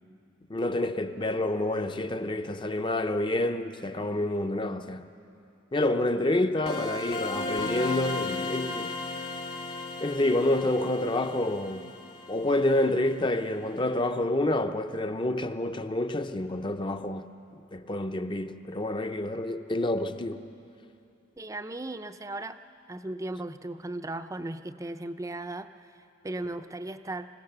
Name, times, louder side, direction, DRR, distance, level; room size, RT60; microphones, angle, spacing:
voice 1, 0.5-5.1 5.7-9.0 10.0-11.9 12.3-17.3 17.7-20.4, left 1 dB, 25° left, 0.6 m, -28 dB
sound 1, 6.7-13.3, left 2 dB, 55° left, 1.5 m, -35 dB
voice 2, 21.4-22.6 22.9-25.9 26.2-27.3, right 2 dB, 15° right, 0.5 m, -36 dB
26.0 x 16.5 x 6.7 m
head